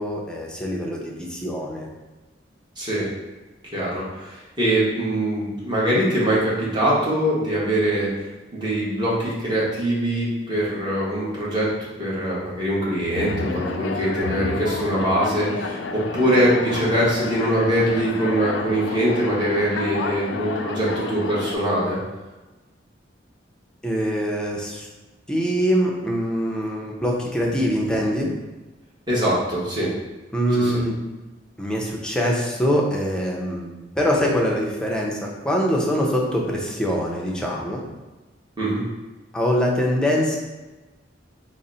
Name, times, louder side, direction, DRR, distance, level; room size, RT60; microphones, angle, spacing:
voice 1, 0.0-1.9 23.8-24.9 25.3-28.3 30.3-30.9 31.6-37.8 39.3-40.4, equal, 5° left, -2 dB, 0.5 m, -23 dB
voice 2, 2.8-3.1 3.7-8.1 8.5-22.0 29.1-29.9 30.6-30.7 38.6-38.8, right 1 dB, 25° right, -7 dB, 1.1 m, -23 dB
sound 1, 13.1-21.6, left 4 dB, 80° left, 0.3 m, -30 dB
3.9 x 2.0 x 3.9 m, 1.1 s
head